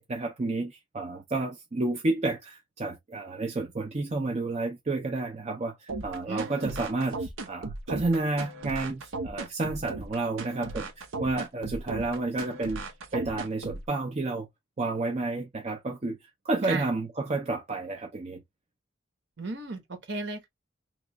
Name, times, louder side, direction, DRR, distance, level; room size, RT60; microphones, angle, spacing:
voice 1, 0.0-12.8 13.1-14.5 14.8-16.2 16.4-18.4, right 2 dB, 35° right, 0.5 m, -30 dB
sound 1, 5.9-13.9, right 2 dB, 80° right, 0.7 m, -36 dB
voice 2, 6.3-6.8 16.6-16.9 19.4-20.5, right 3 dB, 60° right, 1.0 m, -35 dB
3.0 x 2.4 x 3.3 m
head